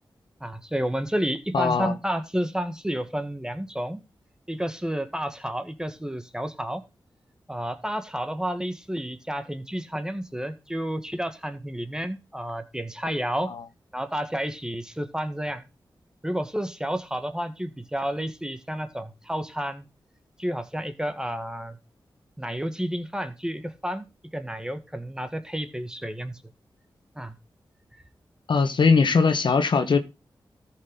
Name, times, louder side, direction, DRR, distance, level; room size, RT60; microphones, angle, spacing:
voice 1, 0.4-4.0 4.5-6.8 7.5-13.5 13.9-15.6 16.2-19.9 20.4-21.8 22.4-24.0 24.3-26.4 27.1-27.3, equal, 10° right, 1.7 m, -30 dB
voice 2, 1.5-1.9 13.5-13.6 28.5-30.0, left 4 dB, 70° left, 1.5 m, -20 dB
14.0 x 6.0 x 4.0 m
cardioid pair, 50°, 9 cm